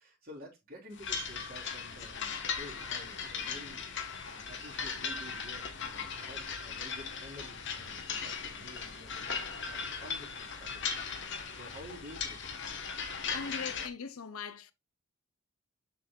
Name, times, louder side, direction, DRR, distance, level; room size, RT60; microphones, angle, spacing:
voice 1, 0.0-3.8 4.3-10.8 11.5-12.4, equal, 40° right, 3.6 m, -51 dB
sound 1, 1.0-13.9, left 6 dB, 55° left, 1.2 m, -38 dB
voice 2, 13.3-14.7, left 5 dB, 75° left, 0.7 m, -40 dB
7.2 x 5.9 x 2.4 m
head